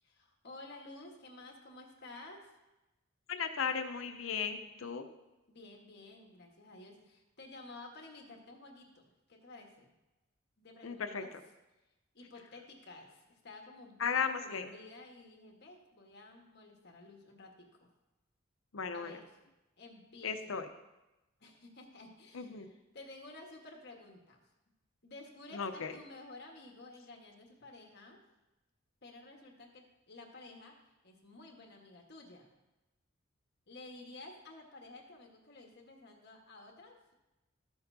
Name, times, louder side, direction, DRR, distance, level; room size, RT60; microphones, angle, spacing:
voice 1, 0.0-2.5 5.5-9.9 10.6-11.3 12.1-17.9 18.9-19.4 19.8-20.6 21.4-24.4 25.0-28.2 29.0-32.5 33.7-37.0, left 2 dB, 55° left, 2 dB, 1.4 m, -53 dB
voice 2, 3.3-5.1 10.8-11.2 14.0-14.7 18.7-19.1 20.2-20.7 22.3-22.7 25.5-25.9, left 6 dB, 90° left, 8 dB, 0.7 m, -35 dB
13.5 x 7.0 x 2.7 m, 1.0 s
head